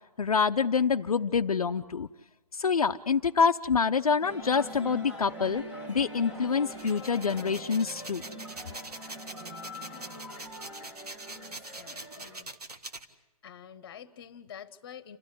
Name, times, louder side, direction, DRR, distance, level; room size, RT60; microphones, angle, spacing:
voice 1, 0.2-2.1 2.5-5.6 5.9-8.2, left 5 dB, 70° left, 6 dB, 0.7 m, -26 dB
sound 1, 4.2-12.4, equal, 10° right, 1.4 m, -43 dB
sound 2, 6.7-13.0, right 2 dB, 90° right, 1.8 m, -43 dB
voice 2, 11.3-12.5 13.4-15.2, left 8 dB, 35° left, 14 dB, 1.2 m, -48 dB
29.0 x 13.0 x 9.7 m, 1.0 s
figure-of-eight pair, 145°, 19 cm